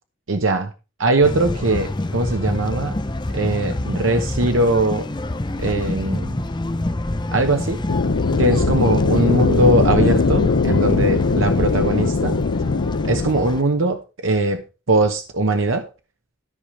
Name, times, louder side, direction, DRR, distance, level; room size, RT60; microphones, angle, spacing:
voice 1, 0.3-0.7 1.0-3.0 3.3-5.1 5.6-6.4 7.3-7.8 8.4-12.4 13.0-15.9, right 2 dB, 80° right, 6 dB, 1.1 m, -20 dB
sound 1, 1.2-13.6, left 1 dB, 25° left, 0.6 m, -27 dB
sound 2, 7.9-13.3, left 4 dB, 75° left, 0.6 m, -20 dB
13.5 x 5.0 x 5.4 m, 0.31 s
head